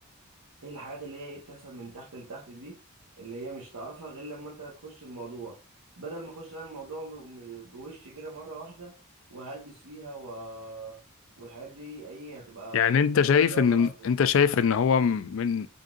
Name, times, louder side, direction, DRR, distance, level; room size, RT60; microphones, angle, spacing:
voice 1, 0.6-2.8 3.2-5.6 6.0-8.9 9.3-11.0 11.4-12.9 13.2-14.2, right 3 dB, 90° right, 1.1 m, -41 dB
voice 2, 12.7-15.7, left 6 dB, 60° left, 0.3 m, -22 dB
3.9 x 3.6 x 2.5 m
head